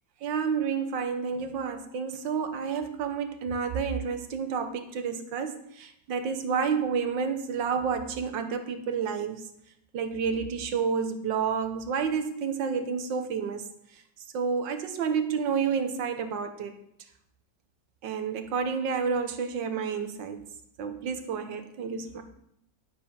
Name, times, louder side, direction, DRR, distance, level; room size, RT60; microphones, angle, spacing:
voice 1, 0.2-9.4 9.9-13.7 14.3-16.8 18.0-20.4 20.8-22.2, right 6 dB, 85° right, 8 dB, 1.7 m, -30 dB
11.5 x 7.0 x 5.4 m, 0.75 s
omnidirectional pair, 2.0 m